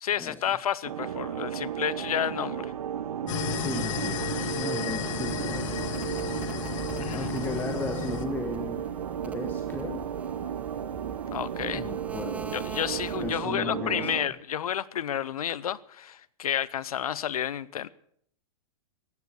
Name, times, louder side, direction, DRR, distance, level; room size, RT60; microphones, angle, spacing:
voice 1, 0.0-2.7 7.0-7.3 11.3-11.9 12.5-17.9, left 10 dB, 85° left, 0.7 m, -31 dB
sound 1, 0.8-14.3, right 9 dB, 80° right, 1.1 m, -34 dB
sound 2, 3.3-8.3, left 11 dB, 60° left, 1.2 m, -34 dB
voice 2, 3.5-4.2 4.5-5.6 7.0-8.8 9.2-10.0 11.7-12.5 13.2-14.3, left 3 dB, 10° left, 1.3 m, -36 dB
sound 3, 5.1-13.5, right 3 dB, 10° right, 0.7 m, -44 dB
14.5 x 11.0 x 6.9 m
hypercardioid pair, 130°, 18 cm